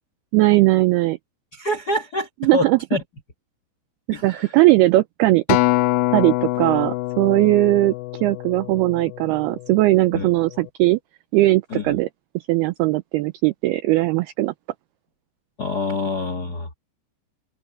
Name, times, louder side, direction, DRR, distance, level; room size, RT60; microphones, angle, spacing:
voice 1, 0.3-1.2 2.4-2.8 4.2-5.6 6.1-7.9 8.2-11.0 11.3-12.1 12.5-14.5, right 18 dB, 80° right, 2.3 m, -18 dB
voice 2, 1.5-3.0 4.1-4.5 10.1-10.3 11.7-11.9 15.6-16.7, left 2 dB, 60° left, 1.0 m, -26 dB
Acoustic guitar, 5.5-9.9 10.6-10.7, left 19 dB, 90° left, 2.2 m, -24 dB
open air
omnidirectional pair, 5.1 m